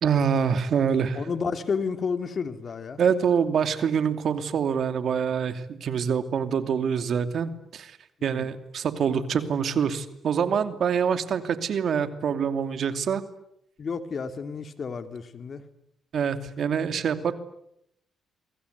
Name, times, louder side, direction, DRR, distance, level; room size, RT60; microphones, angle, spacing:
voice 1, 0.0-1.2 3.0-7.9 8.2-13.2 16.1-17.3, right 7 dB, 60° right, 9 dB, 2.7 m, -25 dB
voice 2, 1.1-3.0 8.2-8.5 13.8-15.6, left 5 dB, 45° left, 9 dB, 2.7 m, -31 dB
28.5 x 25.0 x 8.3 m, 0.79 s
cardioid pair, 90°, 0 cm